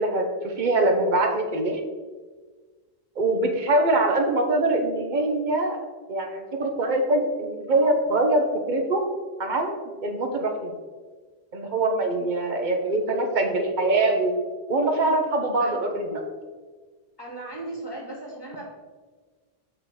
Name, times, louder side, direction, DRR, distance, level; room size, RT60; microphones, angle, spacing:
voice 1, 0.0-1.8 3.2-5.8 6.1-9.0 9.4-10.7 11.5-14.4 14.7-16.2, right 2 dB, 50° right, 3 dB, 1.0 m, -23 dB
voice 2, 17.2-18.6, right 2 dB, 25° left, -3 dB, 2.0 m, -37 dB
6.3 x 5.6 x 4.2 m, 1.4 s
omnidirectional pair, 1.0 m